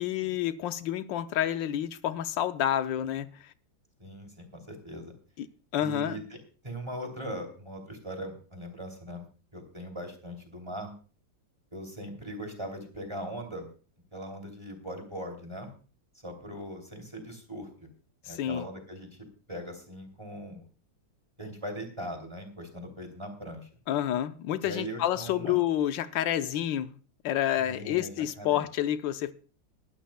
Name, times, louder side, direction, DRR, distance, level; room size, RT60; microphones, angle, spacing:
voice 1, 0.0-3.5 5.4-5.5 5.7-6.2 18.3-18.6 23.9-26.9 27.2-29.3, left 11 dB, 75° left, 1.5 m, -29 dB
voice 2, 4.0-5.1 5.8-6.4 6.6-9.3 9.5-10.9 11.7-13.7 14.1-15.7 16.2-17.9 18.2-20.6 21.4-23.7 24.6-25.6 27.6-28.6, equal, 15° right, 2.7 m, -40 dB
21.5 x 12.5 x 2.2 m
omnidirectional pair, 2.0 m